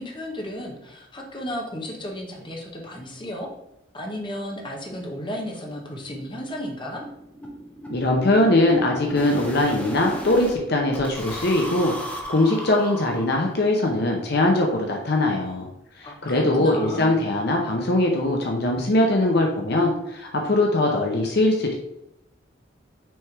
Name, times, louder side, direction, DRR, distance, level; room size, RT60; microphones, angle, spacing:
voice 1, 0.0-3.5 3.9-7.0 16.0-17.2, equal, 25° left, 0 dB, 1.1 m, -34 dB
sound 1, 3.7-3.8 4.1-4.2 4.5-4.6 4.9-5.1 5.3-10.5 10.9-13.7, equal, 5° left, 0.8 m, -36 dB
voice 2, 7.9-11.9 12.3-15.7 16.0-21.7, left 1 dB, 55° left, 1 dB, 0.7 m, -21 dB
6.2 x 3.5 x 4.5 m, 0.84 s
head